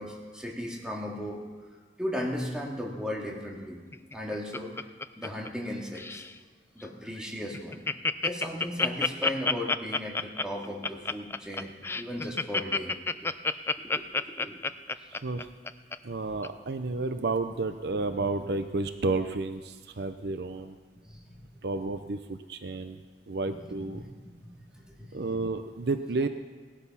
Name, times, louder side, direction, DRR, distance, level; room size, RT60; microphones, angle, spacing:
voice 1, 0.0-1.4 2.0-3.8 4.1-4.8 5.2-6.2 6.8-7.8 8.2-13.4 13.8-14.6 21.1-21.4 23.5-24.1 24.4-24.5 24.8-25.2, left 1 dB, 5° right, -2 dB, 2.2 m, -36 dB
Laughter, 3.9-5.7 6.0-6.3 6.8-6.9 7.2-7.3 7.5-16.0 16.4-16.5, left 3 dB, 15° left, 0.4 m, -29 dB
voice 2, 15.1-15.5 16.0-20.8 21.6-23.0 23.3-24.0 25.1-26.3, right 3 dB, 60° right, 9 dB, 0.7 m, -31 dB
17.5 x 12.5 x 5.7 m, 1.4 s
head